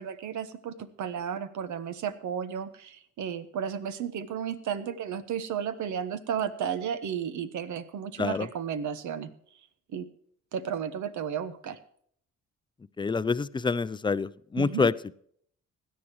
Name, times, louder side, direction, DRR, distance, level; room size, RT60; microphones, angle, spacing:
voice 1, 0.0-9.3 9.9-10.1 10.5-11.8 14.6-14.9, right 8 dB, 75° right, 12 dB, 1.2 m, -33 dB
voice 2, 13.0-14.9, left 4 dB, 15° left, 16 dB, 0.4 m, -27 dB
17.0 x 11.5 x 3.2 m, 0.63 s
cardioid pair, 90°, 30 cm